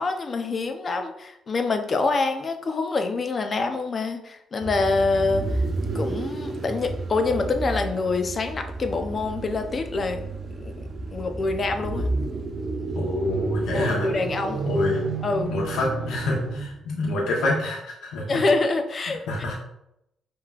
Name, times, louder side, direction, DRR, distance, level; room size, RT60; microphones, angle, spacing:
voice 1, 0.0-5.6 5.9-10.2 10.6-12.1 13.7-14.7 15.2-15.5 18.3-19.2, left 3 dB, 40° left, 6 dB, 0.6 m, -26 dB
sound 1, 4.6-16.8, right 3 dB, 45° right, 0.6 m, -31 dB
voice 2, 12.9-14.1 14.7-15.1 15.5-18.4 19.3-19.5, left 2 dB, 80° left, -2 dB, 1.0 m, -27 dB
5.6 x 3.1 x 2.4 m, 0.80 s
cardioid pair, 90°, 0 cm